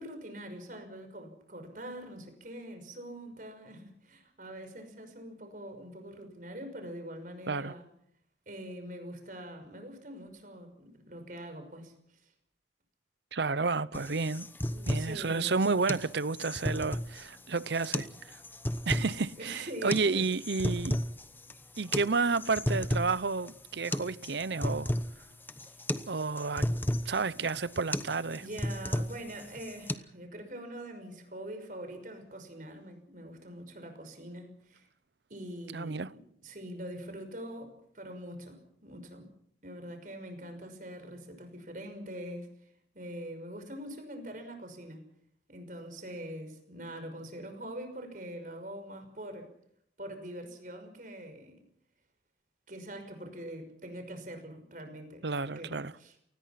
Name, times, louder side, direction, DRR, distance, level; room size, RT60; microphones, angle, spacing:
voice 1, 0.0-7.9 8.5-11.9 14.7-15.6 18.9-19.0 19.4-20.2 25.6-25.8 27.3-27.4 28.3-34.9 35.3-36.0 36.4-39.3 39.6-45.0 45.5-49.5 50.0-51.6 52.7-56.2, right 1 dB, 45° right, 5.9 m, -44 dB
voice 2, 13.3-14.5 14.9-18.4 18.9-21.0 21.8-24.9 26.1-26.7 27.1-28.5 35.7-36.1 55.2-55.9, right 4 dB, 75° right, 0.8 m, -31 dB
sound 1, 13.9-29.9, left 1 dB, 10° left, 1.0 m, -34 dB
28.0 x 20.0 x 5.9 m
head